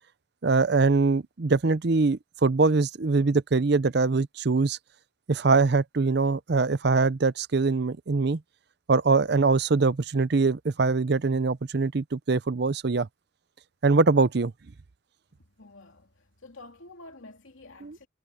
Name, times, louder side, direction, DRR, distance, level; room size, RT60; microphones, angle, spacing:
voice 1, 0.4-4.8 5.3-8.4 8.9-13.1 13.8-14.5 17.8-17.9, right 4 dB, 55° right, 0.6 m, -23 dB
voice 2, 15.4-18.1, left 2 dB, 90° left, 2.8 m, -49 dB
head